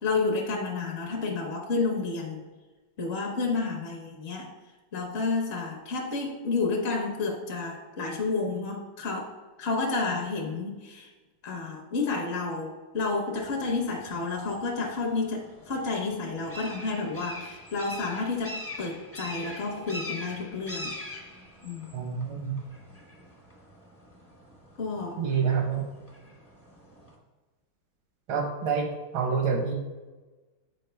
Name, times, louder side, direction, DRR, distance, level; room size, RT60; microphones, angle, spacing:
voice 1, 0.0-2.4 3.0-4.5 4.9-9.3 9.6-11.1 11.4-20.9 21.6-21.9 24.8-25.2, left 3 dB, 50° left, 0 dB, 0.7 m, -30 dB
sound 1, 13.4-27.2, left 1 dB, 20° left, 0.4 m, -44 dB
voice 2, 21.9-22.6 25.2-25.9 28.3-29.7, right 6 dB, 80° right, 3 dB, 1.8 m, -27 dB
7.6 x 4.7 x 3.3 m, 1.2 s
omnidirectional pair, 2.2 m